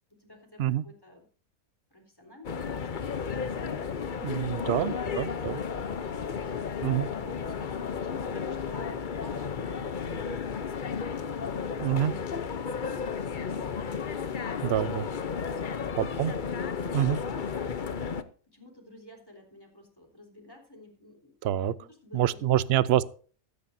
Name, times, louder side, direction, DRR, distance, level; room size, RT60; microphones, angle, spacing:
voice 1, 0.1-1.3 1.9-3.7 7.1-15.1 17.0-17.9 18.5-22.7, left 1 dB, 15° left, 2 dB, 3.7 m, -52 dB
sound 1, 2.4-18.2, left 6 dB, 45° left, 0.7 m, -33 dB
voice 2, 4.2-5.6 6.8-7.1 11.8-12.1 14.6-15.1 16.0-16.3 16.9-17.2 21.4-21.7 22.1-23.1, right 11 dB, 55° right, 17 dB, 0.7 m, -26 dB
15.0 x 13.5 x 2.7 m, 0.41 s
omnidirectional pair, 1.6 m